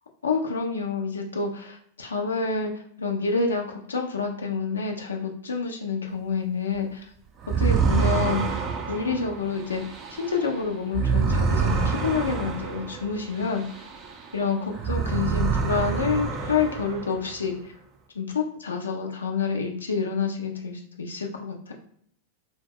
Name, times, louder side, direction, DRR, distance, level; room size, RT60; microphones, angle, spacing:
voice 1, 0.2-7.1 7.6-8.6 8.9-9.8 10.1-13.8 14.3-17.7 18.1-21.7, left 5 dB, 70° left, 2 dB, 0.4 m, -28 dB
sound 1, 7.4-14.3 14.7-17.4, right 5 dB, 30° right, 0.4 m, -27 dB
2.1 x 2.0 x 3.6 m, 0.66 s
figure-of-eight pair, 90°, 0 cm